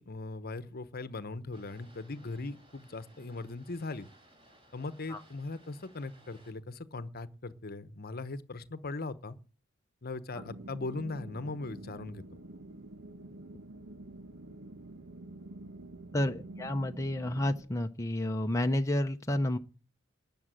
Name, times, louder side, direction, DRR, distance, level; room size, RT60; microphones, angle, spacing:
voice 1, 0.0-4.1 4.7-9.4 10.0-12.2, left 3 dB, 50° left, 1.0 m, -39 dB
Boat Water vehicle, 1.5-6.5, right 1 dB, 25° right, 4.2 m, -60 dB
sound 1, 10.3-17.6, right 2 dB, 80° right, 1.3 m, -47 dB
voice 2, 16.1-19.6, left 1 dB, 15° left, 0.7 m, -30 dB
13.0 x 8.7 x 9.1 m
head